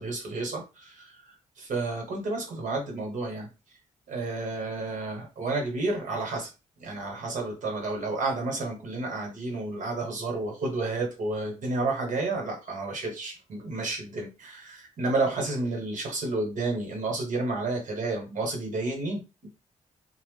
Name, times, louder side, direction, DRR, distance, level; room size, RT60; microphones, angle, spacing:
voice 1, 0.0-3.5 4.1-6.5 6.8-19.5, right 3 dB, 70° right, 1 dB, 1.2 m, -31 dB
2.8 x 2.1 x 3.2 m, 0.29 s
cardioid pair, 90°, 14 cm